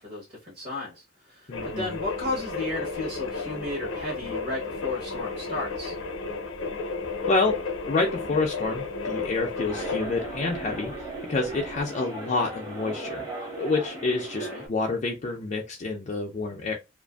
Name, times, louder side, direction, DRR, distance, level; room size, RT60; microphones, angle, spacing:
voice 1, 0.0-5.9 14.4-14.7, left 2 dB, 40° right, 1.0 m, -34 dB
sound 1, 1.5-11.9, left 4 dB, 75° left, 0.6 m, -33 dB
voice 2, 1.5-2.0 7.3-7.6 7.9-16.7, left 3 dB, 35° left, 0.4 m, -28 dB
sound 2, 9.7-14.7, right 2 dB, 20° right, 0.8 m, -37 dB
2.5 x 2.4 x 2.3 m
head